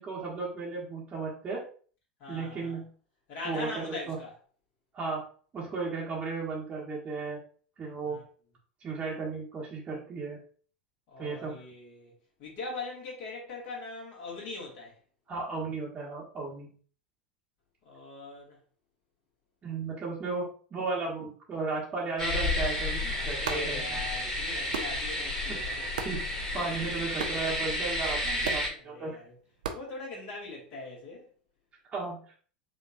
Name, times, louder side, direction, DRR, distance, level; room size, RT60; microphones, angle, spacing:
voice 1, 0.0-1.6 2.3-2.9 3.4-4.2 4.9-5.2 5.5-7.4 7.8-8.2 8.8-10.4 11.2-11.6 15.3-16.7 19.6-24.0 25.5-25.6 26.0-29.1 31.9-32.2, right 4 dB, 25° right, 1.2 m, -35 dB
voice 2, 2.2-2.8 3.3-4.3 8.1-8.2 11.1-12.1 12.4-14.9 17.8-18.6 23.2-25.9 28.8-29.4 29.7-31.3, left 2 dB, 45° left, 2.0 m, -41 dB
sound 1, 22.2-28.7, left 1 dB, 15° left, 1.8 m, -31 dB
sound 2, 23.3-30.7, right 6 dB, 65° right, 0.6 m, -42 dB
4.9 x 2.9 x 2.6 m
figure-of-eight pair, 80°, 5 cm